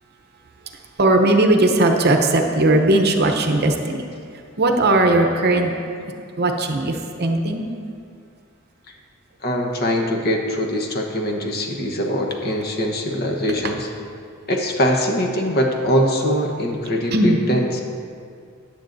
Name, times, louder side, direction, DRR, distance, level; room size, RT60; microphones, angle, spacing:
voice 1, 1.0-3.7 4.6-5.8 6.4-7.6 17.1-17.4, right 2 dB, 50° right, 4 dB, 0.8 m, -17 dB
voice 2, 9.4-13.9 14.5-17.7, equal, 45° left, 1 dB, 1.1 m, -22 dB
14.5 x 9.6 x 2.6 m, 2.3 s
head